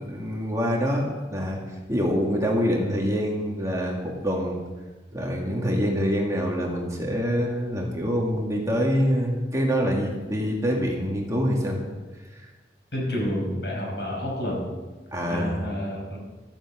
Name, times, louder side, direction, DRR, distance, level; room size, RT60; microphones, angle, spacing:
voice 1, 0.0-1.6 1.9-4.6 5.1-11.8 12.3-12.5 15.1-15.6, equal, 20° right, -1 dB, 2.2 m, -25 dB
voice 2, 12.9-14.7 15.3-16.2, equal, 75° left, -2 dB, 5.6 m, -29 dB
13.5 x 8.9 x 7.5 m, 1.3 s
head